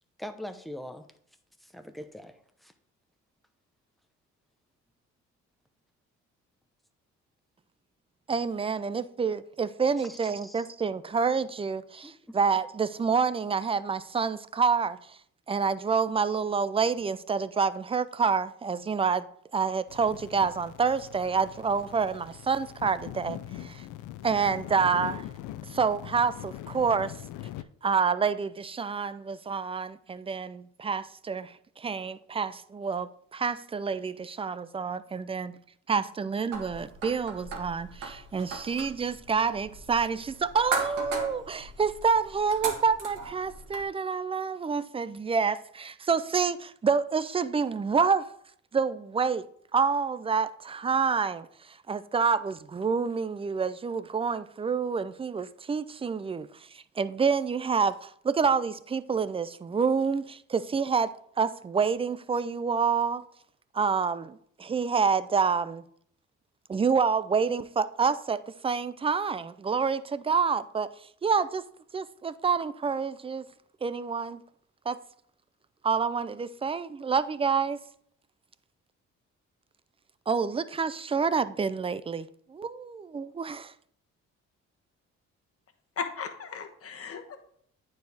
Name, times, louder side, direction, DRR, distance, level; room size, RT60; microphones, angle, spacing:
voice 1, 0.2-1.1 1.6-2.7 10.0-10.6 12.0-12.4, left 1 dB, ahead, 0.7 m, -43 dB
voice 2, 8.3-15.0 15.5-19.2 19.5-23.8 24.2-25.3 25.7-27.1 27.8-35.6 35.9-48.3 48.7-49.5 49.7-56.5 56.7-61.1 61.4-63.2 63.7-65.8 66.7-70.9 71.2-71.6 71.9-73.4 73.8-74.4 74.9-75.0 75.8-77.8 80.3-83.7, right 5 dB, 20° right, 0.3 m, -28 dB
sound 1, 19.9-27.6, left 13 dB, 90° left, 0.5 m, -42 dB
sound 2, 36.5-43.8, right 4 dB, 85° right, 1.7 m, -38 dB
voice 3, 86.0-87.4, left 6 dB, 50° left, 1.2 m, -36 dB
9.2 x 4.6 x 3.4 m
cardioid pair, 90°, 30 cm